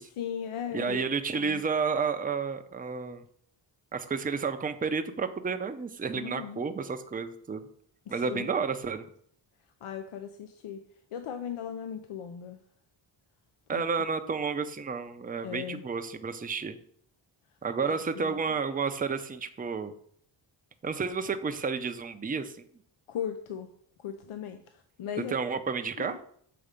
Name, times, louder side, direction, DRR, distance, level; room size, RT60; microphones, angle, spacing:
voice 1, 0.0-1.0 1.3-1.6 6.1-6.6 8.1-8.5 9.8-10.8 11.1-12.6 13.7-13.8 15.4-15.8 17.8-18.4 23.1-23.7 24.0-25.3 26.0-26.2, left 8 dB, 85° left, 7 dB, 0.7 m, -37 dB
voice 2, 0.7-3.2 3.9-7.7 8.1-9.0 13.7-16.8 17.6-19.9 20.8-22.6 25.3-26.2, right 5 dB, 20° right, 8 dB, 0.5 m, -31 dB
6.8 x 4.0 x 5.1 m, 0.63 s
wide cardioid pair, 95°, 49 cm